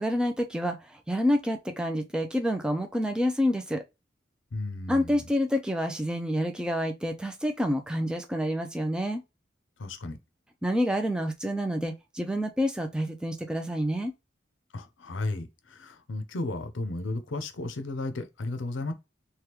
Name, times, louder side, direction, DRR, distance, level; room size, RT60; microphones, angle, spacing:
voice 1, 0.0-3.8 4.9-9.2 10.6-14.1, equal, 5° right, 0.4 m, -28 dB
voice 2, 4.5-5.3 9.8-10.2 14.7-18.9, left 2 dB, 80° left, 0.6 m, -34 dB
3.4 x 2.3 x 2.9 m
head